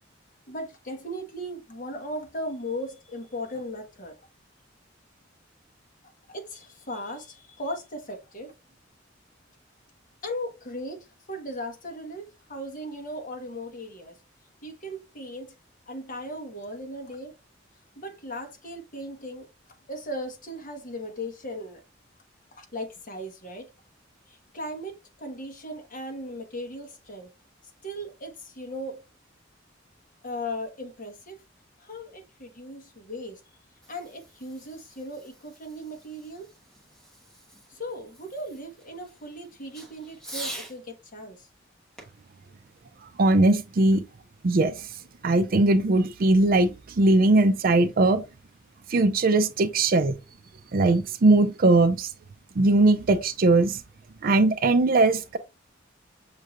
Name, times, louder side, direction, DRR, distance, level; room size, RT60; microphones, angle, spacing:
voice 1, 0.5-4.1 6.3-8.5 10.2-14.2 14.6-15.5 15.9-17.3 18.0-19.4 19.9-21.8 22.5-23.7 24.3-27.3 27.8-29.0 30.2-31.4 31.8-33.4 33.9-36.5 37.7-41.5, equal, 45° left, 1.2 m, -37 dB
Fireworks, 33.5-40.8 42.0-43.6, right 1 dB, 5° left, 1.1 m, -45 dB
voice 2, 43.2-44.1 44.4-44.9 45.2-48.2 48.9-50.1 50.7-52.1 52.6-53.8 54.2-55.4, right 2 dB, 50° right, 0.5 m, -20 dB
6.5 x 3.1 x 2.5 m
head